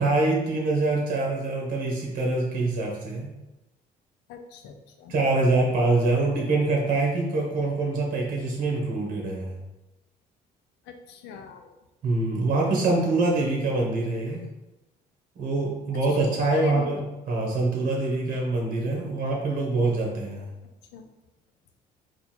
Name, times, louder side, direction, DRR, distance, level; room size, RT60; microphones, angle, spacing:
voice 1, 0.0-3.3 5.1-9.5 12.0-14.5 15.4-20.5, right 2 dB, 55° right, -1 dB, 1.3 m, -25 dB
voice 2, 4.3-5.2 10.9-11.8 16.1-17.1 20.9-21.0, left 5 dB, 85° left, 5 dB, 0.6 m, -40 dB
4.5 x 2.6 x 4.3 m, 1.0 s
cardioid pair, 110°, 17 cm